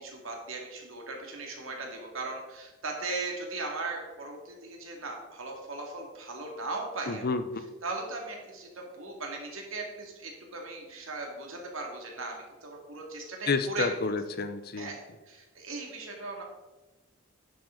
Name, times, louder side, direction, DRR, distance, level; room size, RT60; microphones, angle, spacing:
voice 1, 0.0-7.2 7.8-13.9 14.8-16.4, right 3 dB, 70° right, 1 dB, 2.2 m, -38 dB
voice 2, 7.1-7.6 13.5-14.9, left 4 dB, 45° left, 10 dB, 0.6 m, -30 dB
10.0 x 7.7 x 3.8 m, 1.1 s
head